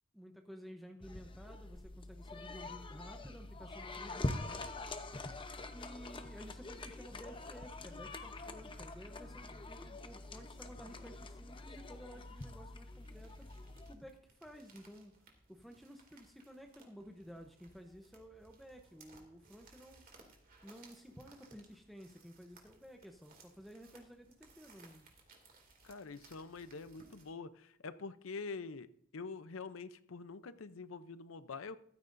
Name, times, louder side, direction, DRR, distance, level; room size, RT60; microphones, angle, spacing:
voice 1, 0.1-4.9 5.7-13.5 13.9-15.1 15.5-20.0 20.6-25.1, equal, ahead, 3 dB, 0.8 m, -53 dB
sound 1, 1.0-13.9, left 2 dB, 25° left, 0.8 m, -45 dB
sound 2, 12.3-27.3, right 3 dB, 45° right, 2.5 m, -63 dB
voice 2, 25.8-31.8, left 4 dB, 80° left, 13 dB, 0.6 m, -46 dB
14.5 x 13.0 x 2.6 m, 0.68 s
head